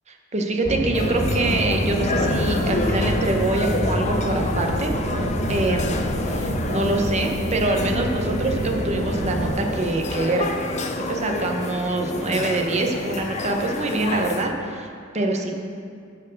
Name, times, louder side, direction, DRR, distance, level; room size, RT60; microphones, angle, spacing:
voice 1, 0.3-4.9 5.5-10.5 11.1-15.5, right 2 dB, 35° right, 3 dB, 0.8 m, -25 dB
sound 1, 0.6-9.5, equal, 70° right, 2.1 m, -26 dB
sound 2, 0.9-14.4, left 2 dB, 35° left, 0.5 m, -29 dB
11.5 x 4.5 x 6.4 m, 2.3 s
head